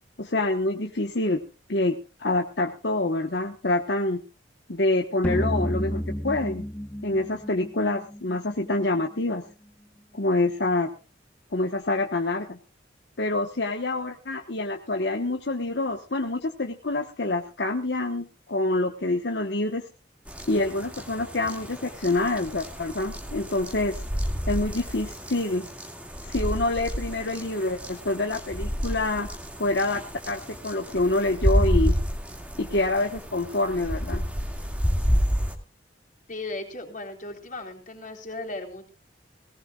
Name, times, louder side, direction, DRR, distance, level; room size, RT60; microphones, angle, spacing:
voice 1, 0.2-1.4 1.7-4.2 4.7-6.6 7.0-9.4 10.1-10.9 11.5-12.6 13.2-19.9 20.5-24.0 24.5-25.7 26.2-29.3 29.6-32.0 32.6-34.2, left 2 dB, 65° left, 4 dB, 1.2 m, -26 dB
sound 1, 5.2-8.5, equal, 10° left, 0.9 m, -30 dB
sound 2, 20.3-35.5, equal, 5° right, 2.1 m, -30 dB
voice 2, 36.3-38.9, left 2 dB, 45° left, 2 dB, 3.8 m, -36 dB
19.0 x 18.0 x 2.4 m, 0.32 s
head